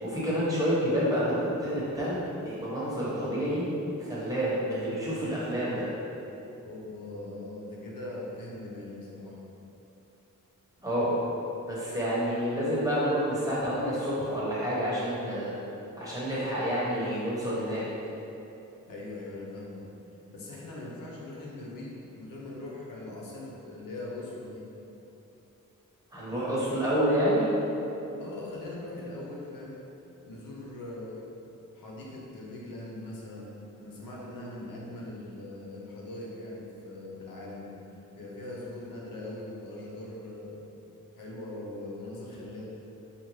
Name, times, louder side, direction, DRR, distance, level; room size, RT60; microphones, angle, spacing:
voice 1, 0.0-3.6 4.0-5.8 10.8-11.2 11.7-15.5 16.0-17.8 26.1-27.5, equal, 10° right, -9 dB, 1.1 m, -28 dB
voice 2, 6.6-9.5 18.9-19.9 20.3-24.6 28.2-29.8 30.3-31.3 31.7-37.7 38.1-40.6 41.1-42.6, left 2 dB, 90° left, -4 dB, 0.7 m, -41 dB
5.0 x 2.2 x 3.1 m, 3.0 s
wide cardioid pair, 90°, 33 cm